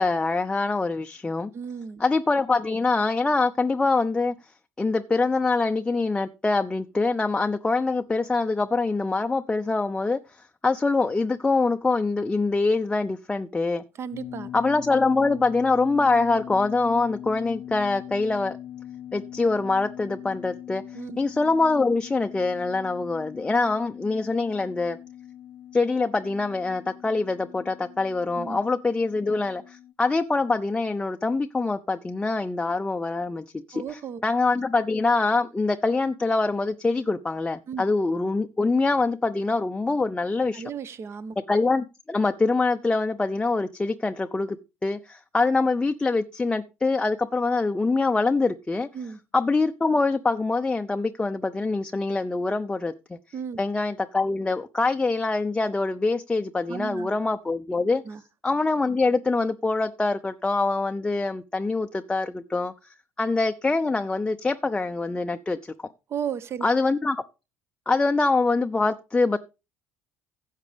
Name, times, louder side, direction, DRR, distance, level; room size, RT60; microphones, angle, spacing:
voice 1, 0.0-1.5 2.0-4.3 4.8-10.2 10.6-13.8 14.5-18.6 19.1-20.8 21.2-25.0 25.7-33.8 34.2-40.6 41.5-44.6 44.8-48.9 49.3-53.2 53.6-58.0 58.4-62.7 63.2-65.7 66.6-67.2 67.9-69.4, left 3 dB, 15° left, 0.6 m, -24 dB
voice 2, 1.5-2.0 13.9-14.5 20.9-21.2 28.4-28.6 33.7-34.2 37.7-37.8 40.5-41.4 48.9-49.2 53.3-53.6 56.7-57.1 58.0-58.2 66.1-66.7, right 7 dB, 40° right, 1.0 m, -34 dB
sound 1, 14.1-29.9, left 11 dB, 50° left, 0.7 m, -41 dB
15.5 x 7.4 x 3.4 m
figure-of-eight pair, 60°, 7 cm